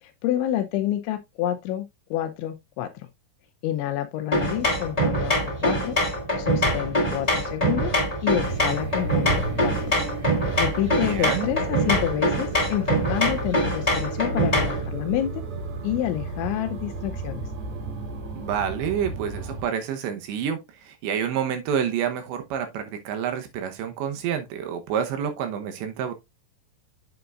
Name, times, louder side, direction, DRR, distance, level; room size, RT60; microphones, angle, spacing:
voice 1, 0.0-3.1 3.6-6.0 6.4-9.9 10.2-15.4 15.8-17.5, left 12 dB, 80° left, 2.7 m, -29 dB
sound 1, 4.3-14.8, equal, 15° left, 1.1 m, -24 dB
sound 2, 8.4-19.6, right 4 dB, 55° right, 2.1 m, -33 dB
voice 2, 11.0-11.5 18.3-26.1, right 8 dB, 75° right, 2.9 m, -28 dB
8.1 x 7.9 x 2.4 m
omnidirectional pair, 5.9 m